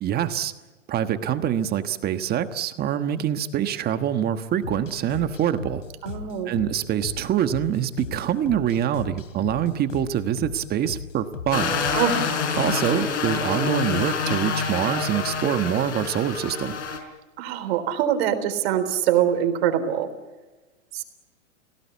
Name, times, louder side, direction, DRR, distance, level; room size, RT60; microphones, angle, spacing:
voice 1, 0.0-0.5 0.9-5.8 6.4-11.8 12.6-16.8, right 10 dB, 25° right, 10 dB, 1.3 m, -25 dB
sound 1, 4.6-12.2, left 6 dB, 90° left, 3.2 m, -37 dB
voice 2, 6.0-6.5 11.9-12.3 17.4-20.1 20.9-21.0, right 10 dB, 55° right, 10 dB, 3.7 m, -23 dB
sound 2, 11.5-17.0, left 6 dB, 70° left, 5.3 m, -27 dB
29.5 x 17.5 x 8.4 m, 1.2 s
hypercardioid pair, 125°, 36 cm